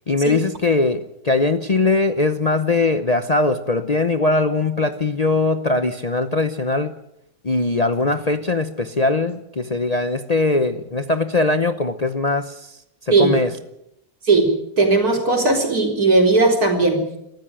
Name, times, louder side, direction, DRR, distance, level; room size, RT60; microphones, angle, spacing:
voice 1, 0.1-7.0 7.4-12.8 13.0-13.5, left 3 dB, 35° left, 9 dB, 0.7 m, -21 dB
voice 2, 14.8-17.2, right 3 dB, 80° right, 2 dB, 4.5 m, -17 dB
23.0 x 13.5 x 8.9 m, 0.82 s
omnidirectional pair, 1.6 m